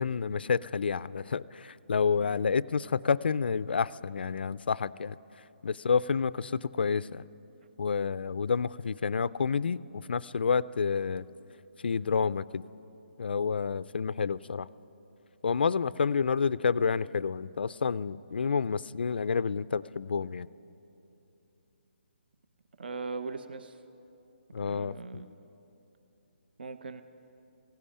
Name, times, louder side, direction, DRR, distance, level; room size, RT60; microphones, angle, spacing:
voice 1, 0.0-5.1 5.6-7.2 7.8-11.3 11.8-12.6 13.2-14.7 15.4-20.5 24.5-25.2, left 5 dB, 55° left, 18 dB, 0.4 m, -29 dB
voice 2, 22.8-23.7 24.6-25.3 26.6-27.0, right 4 dB, 55° right, 10 dB, 0.8 m, -39 dB
16.5 x 16.5 x 10.0 m, 2.9 s
hypercardioid pair, 170°, 6 cm